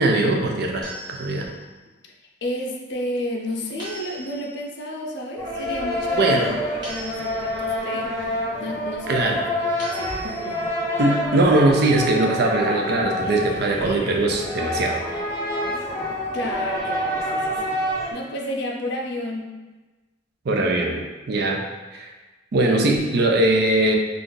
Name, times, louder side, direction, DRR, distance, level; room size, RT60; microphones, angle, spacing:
voice 1, 0.0-1.5 6.1-6.5 9.1-9.4 11.0-15.0 20.5-21.6 21.9-22.1 22.5-24.0, right 2 dB, 60° right, 2 dB, 0.4 m, -21 dB
sound 1, 0.8-1.7 3.8-4.7 6.8-7.7 9.8-10.7, right 1 dB, 25° right, 0.9 m, -39 dB
voice 2, 2.4-6.3 6.7-9.3 9.6-10.7 16.3-19.6, left 1 dB, 65° left, 0 dB, 0.5 m, -31 dB
sound 2, 5.4-18.1, left 1 dB, 15° left, 0.7 m, -27 dB
2.5 x 2.4 x 3.7 m, 1.2 s
head